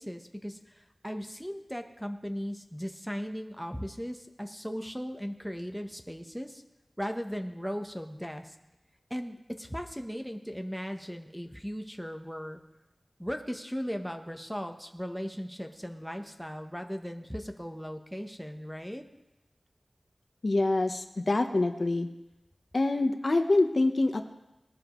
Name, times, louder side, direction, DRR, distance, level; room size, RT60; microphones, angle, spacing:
voice 1, 0.0-6.6 7.0-8.5 9.1-12.6 13.2-19.0, equal, ahead, 5 dB, 1.0 m, -37 dB
voice 2, 20.4-22.1 22.7-24.2, left 2 dB, 60° left, 5 dB, 1.0 m, -25 dB
20.0 x 12.0 x 3.1 m, 0.96 s
wide cardioid pair, 65°, 0 cm